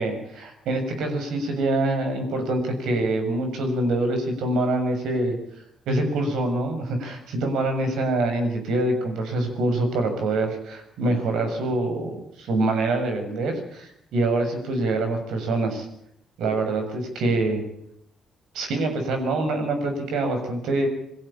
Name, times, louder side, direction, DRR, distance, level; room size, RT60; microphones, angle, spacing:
voice 1, 0.0-5.4 5.9-15.9 16.4-17.6 18.5-20.9, right 2 dB, 85° right, 5 dB, 6.7 m, -25 dB
22.5 x 16.0 x 8.8 m, 0.73 s
cardioid pair, 90°, 0 cm